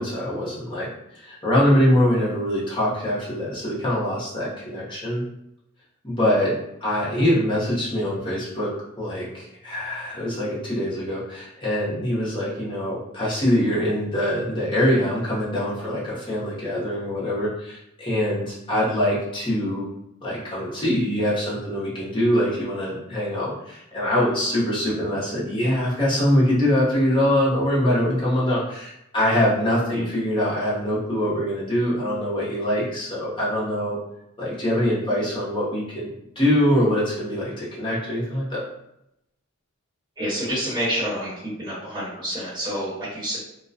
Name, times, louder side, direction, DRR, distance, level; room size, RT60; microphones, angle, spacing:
voice 1, 0.0-5.2 6.0-6.5 6.8-8.7 9.0-19.8 20.2-34.0 34.4-38.6, equal, 20° left, -7 dB, 0.7 m, -23 dB
voice 2, 40.2-43.4, equal, 20° right, -12 dB, 1.3 m, -28 dB
2.3 x 2.2 x 2.5 m, 0.83 s
head